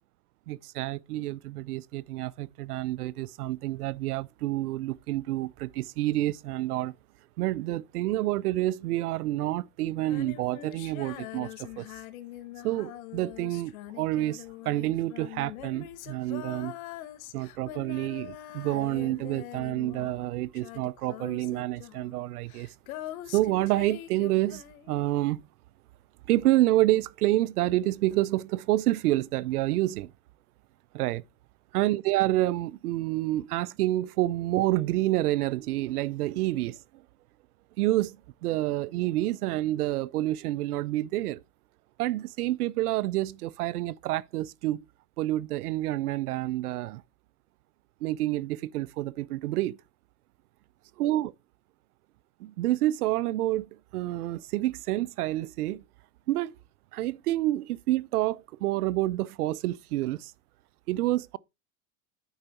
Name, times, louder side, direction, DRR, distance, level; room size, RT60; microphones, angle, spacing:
voice 1, 0.5-6.9 7.4-11.8 12.6-16.7 17.3-22.7 23.3-25.4 26.3-30.1 30.9-31.2 31.7-36.8 37.8-38.2 38.4-41.4 42.0-44.8 45.2-47.0 48.0-49.8 51.0-51.3 52.4-53.7 53.9-55.8 56.3-56.6 56.9-60.3 60.9-61.4, right 16 dB, 90° right, 0.6 m, -28 dB
Female singing, 9.9-20.3 20.5-25.0, left 14 dB, 70° left, 1.0 m, -43 dB
9.4 x 3.9 x 4.4 m
supercardioid pair, 125°, 44 cm